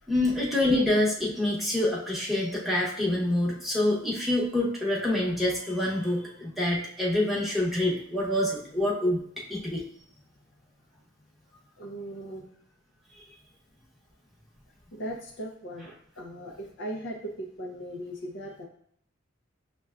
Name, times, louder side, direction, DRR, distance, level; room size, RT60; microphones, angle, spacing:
voice 1, 0.1-9.2 9.5-9.8, left 1 dB, ahead, -5 dB, 0.8 m, -26 dB
voice 2, 11.8-12.4 14.9-18.7, right 1 dB, 60° left, -1 dB, 0.5 m, -38 dB
6.4 x 2.2 x 2.3 m, 0.66 s
head